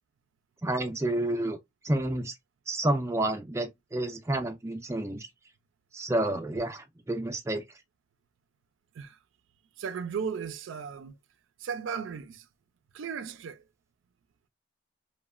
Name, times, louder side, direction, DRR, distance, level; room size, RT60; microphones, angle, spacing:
voice 1, 0.6-1.6 1.8-2.3 2.7-5.3 5.9-7.6, right 1 dB, 15° right, 0.3 m, -29 dB
voice 2, 9.8-11.1 11.6-12.4 12.9-13.6, right 6 dB, 90° right, 0.4 m, -35 dB
3.0 x 2.1 x 2.3 m
head